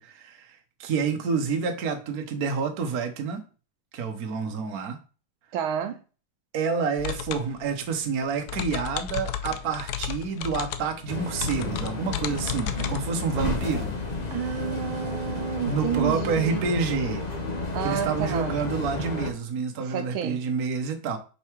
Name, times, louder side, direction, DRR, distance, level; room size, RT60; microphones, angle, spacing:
voice 1, 0.0-3.4 3.9-5.0 6.5-13.9 15.7-17.3 17.8-21.2, right 5 dB, 50° right, 1.4 m, -28 dB
voice 2, 5.5-6.0 12.7-13.0 14.3-16.9 17.7-18.6 19.8-20.4, right 8 dB, 80° right, 1.5 m, -31 dB
sound 1, 7.0-13.0, left 10 dB, 70° left, 0.9 m, -34 dB
sound 2, 11.1-19.3, left 3 dB, 30° left, 0.9 m, -32 dB
5.7 x 5.3 x 4.6 m
omnidirectional pair, 2.3 m